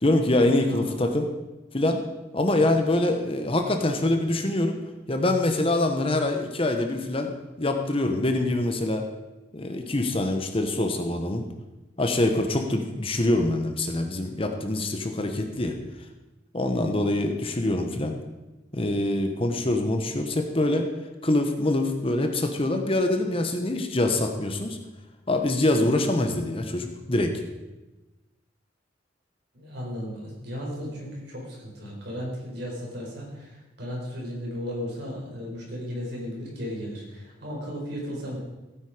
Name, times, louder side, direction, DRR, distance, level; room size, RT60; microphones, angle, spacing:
voice 1, 0.0-1.3 1.7-2.0 2.3-4.8 5.1-9.0 9.5-11.5 12.0-15.8 16.5-18.2 18.7-20.9 21.2-24.8 25.3-27.3, left 1 dB, 30° left, 5 dB, 1.0 m, -24 dB
voice 2, 0.5-1.0 29.5-38.4, equal, 60° right, -2 dB, 4.5 m, -35 dB
16.0 x 9.1 x 5.0 m, 1.1 s
head